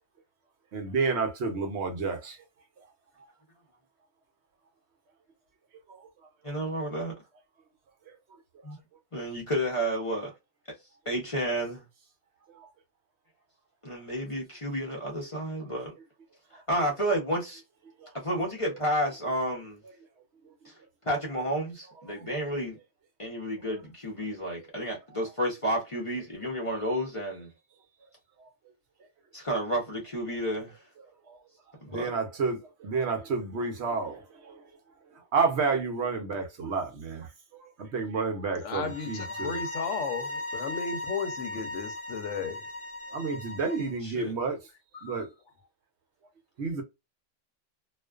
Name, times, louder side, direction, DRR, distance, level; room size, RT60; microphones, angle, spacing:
voice 1, 0.7-2.4 12.5-12.7 18.0-18.1 31.3-31.4 31.9-34.5 35.3-39.6 43.1-44.6 45.0-45.3 46.6-46.8, right 4 dB, 60° right, 0.9 m, -30 dB
voice 2, 6.4-7.1 8.6-8.8 9.1-10.3 11.1-11.8 13.8-15.9 16.5-17.6 18.1-19.8 20.6-20.7 21.0-22.8 23.2-27.5 29.3-30.8 31.8-32.1 44.0-44.3, equal, 35° left, 0.6 m, -31 dB
voice 3, 38.5-42.7 44.9-45.2, left 6 dB, 70° left, 0.9 m, -35 dB
sound 1, 38.8-44.0, left 1 dB, 10° left, 0.9 m, -37 dB
2.4 x 2.2 x 2.3 m
omnidirectional pair, 1.3 m